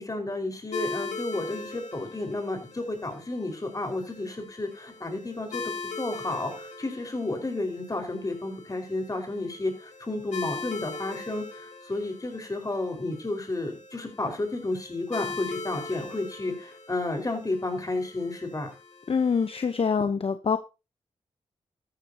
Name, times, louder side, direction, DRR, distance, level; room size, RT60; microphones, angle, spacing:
voice 1, 0.0-5.6 6.0-18.7, left 2 dB, 30° left, 5 dB, 5.0 m, -32 dB
sound 1, 0.7-19.9, left 4 dB, 85° left, 2.2 m, -41 dB
voice 2, 19.1-20.6, left 5 dB, 55° left, 9 dB, 0.9 m, -25 dB
13.5 x 12.0 x 2.9 m, 0.28 s
cardioid pair, 50°, 12 cm